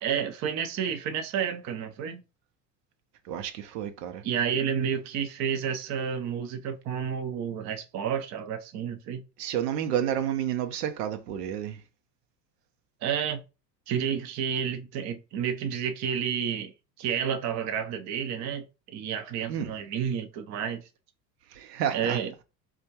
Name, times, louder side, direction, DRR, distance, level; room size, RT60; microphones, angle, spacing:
voice 1, 0.0-2.2 4.2-9.2 13.0-13.4 13.9-16.7 17.0-20.9 21.9-22.3, right 8 dB, 35° right, 0.6 m, -30 dB
voice 2, 3.2-4.2 9.4-11.8 19.5-19.7 21.5-22.2, right 10 dB, 70° right, 0.7 m, -30 dB
4.2 x 2.3 x 2.8 m
figure-of-eight pair, 75°, 50 cm